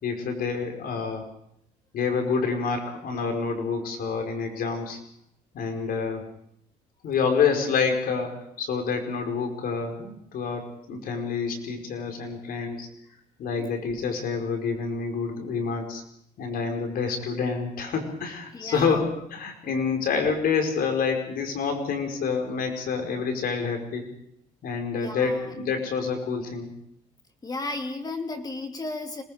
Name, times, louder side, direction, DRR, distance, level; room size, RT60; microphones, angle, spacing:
voice 1, 0.0-1.3 1.9-5.0 5.5-6.3 7.0-12.9 13.4-16.0 16.4-24.1 24.6-26.7, left 5 dB, 60° left, 4 dB, 5.0 m, -28 dB
voice 2, 18.5-19.0 24.9-25.5 27.4-29.2, left 2 dB, 25° left, 5 dB, 2.8 m, -34 dB
26.5 x 19.5 x 5.2 m, 0.71 s
cardioid pair, 110°, 17 cm